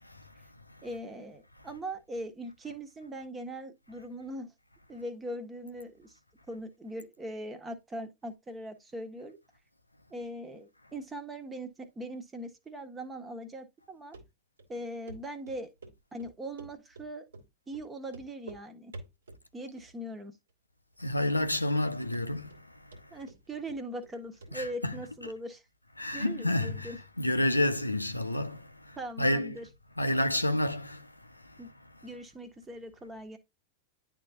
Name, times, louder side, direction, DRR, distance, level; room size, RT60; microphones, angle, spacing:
voice 1, 0.0-1.0 1.6-1.8 21.0-23.3 24.5-25.3 25.9-29.6 29.9-32.2, left 1 dB, 85° left, 0.6 m, -31 dB
voice 2, 0.8-4.5 4.9-6.2 6.5-9.4 10.1-14.2 14.7-15.7 16.1-17.2 17.7-18.9 19.5-20.4 23.1-25.6 26.1-27.0 29.0-29.7 31.6-31.7 32.0-33.4, right 1 dB, 15° right, 1.4 m, -40 dB
Run, 14.1-14.2 14.6-14.7 15.1-15.2 15.5-15.9 16.2-17.1 17.3-17.5 17.7-17.8 18.1-18.6 18.9-19.4 19.8-20.2 20.5-20.6 21.0-21.1 21.4-21.9 22.1-22.6 22.9-24.1 24.4-24.5 24.8-24.9, right 2 dB, 70° right, 2.4 m, -48 dB
11.0 x 3.7 x 2.7 m
figure-of-eight pair, 90°, 0 cm